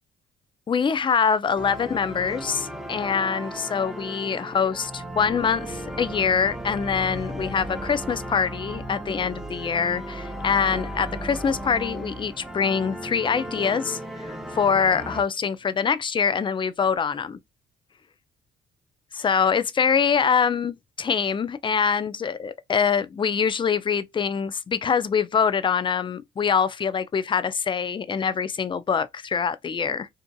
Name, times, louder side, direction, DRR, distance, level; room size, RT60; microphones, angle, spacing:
voice 1, 0.7-17.4 19.1-30.1, left 6 dB, 25° left, 0.3 m, -24 dB
sound 1, 1.6-15.2, right 1 dB, ahead, 0.7 m, -35 dB
2.6 x 2.4 x 2.2 m
supercardioid pair, 70°, 19 cm